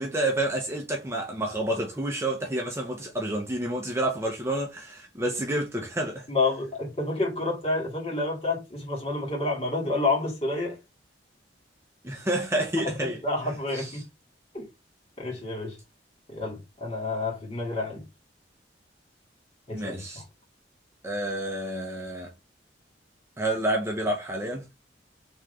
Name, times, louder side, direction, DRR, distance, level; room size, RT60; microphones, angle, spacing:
voice 1, 0.0-6.3 12.0-13.2 13.7-13.9 19.7-20.2 21.0-22.3 23.4-24.7, right 1 dB, 15° right, 0.6 m, -29 dB
voice 2, 6.3-10.8 13.0-14.0 14.5-14.7 15.2-15.8 16.3-18.1 19.7-20.2, left 2 dB, 35° left, 2.0 m, -29 dB
3.6 x 3.1 x 3.2 m
head